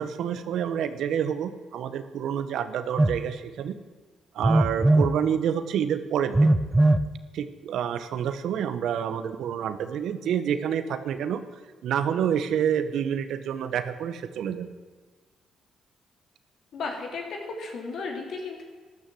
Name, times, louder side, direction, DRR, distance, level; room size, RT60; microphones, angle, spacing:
voice 1, 0.0-3.8 4.3-6.6 7.3-11.4 11.8-14.7, right 8 dB, 75° right, 11 dB, 1.1 m, -28 dB
Telephone, 3.0-3.2 4.4-5.1 6.3-7.1, right 2 dB, 15° right, 0.7 m, -19 dB
voice 2, 16.7-18.6, left 4 dB, 70° left, 2 dB, 3.4 m, -34 dB
13.0 x 12.5 x 7.7 m, 1.4 s
cardioid pair, 90°, 0 cm